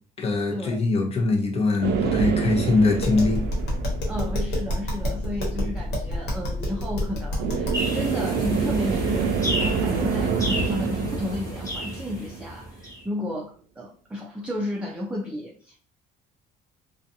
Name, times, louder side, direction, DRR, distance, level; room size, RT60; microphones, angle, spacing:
voice 1, 0.2-3.4, left 3 dB, 35° left, 0 dB, 0.8 m, -22 dB
sound 1, 1.8-4.6 7.4-12.8, right 5 dB, 85° right, 0.4 m, -27 dB
Tap, 2.9-7.9, left 1 dB, 80° left, 1.2 m, -28 dB
voice 2, 4.0-15.8, left 1 dB, 5° right, -2 dB, 0.4 m, -33 dB
sound 2, 7.7-13.0, left 1 dB, 20° left, 1.3 m, -32 dB
2.5 x 2.3 x 2.6 m, 0.42 s
cardioid pair, 110°, 17 cm